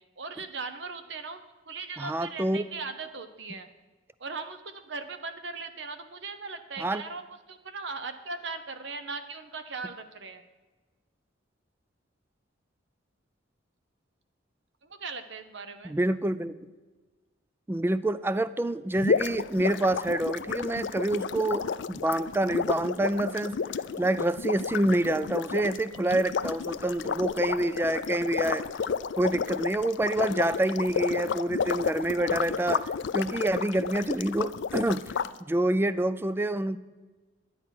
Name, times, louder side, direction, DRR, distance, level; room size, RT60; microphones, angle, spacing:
voice 1, 0.2-3.7 4.2-7.2 7.5-10.4 14.8-16.0, right 4 dB, 65° right, 9 dB, 1.0 m, -39 dB
voice 2, 2.0-2.6 6.8-7.0 15.8-16.5 17.7-23.6 24.0-28.6 29.2-35.1 35.4-36.8, right 1 dB, 10° right, 15 dB, 0.3 m, -27 dB
sound 1, 19.0-35.3, left 6 dB, 65° left, 0.4 m, -31 dB
10.5 x 9.5 x 5.9 m, 1.3 s
head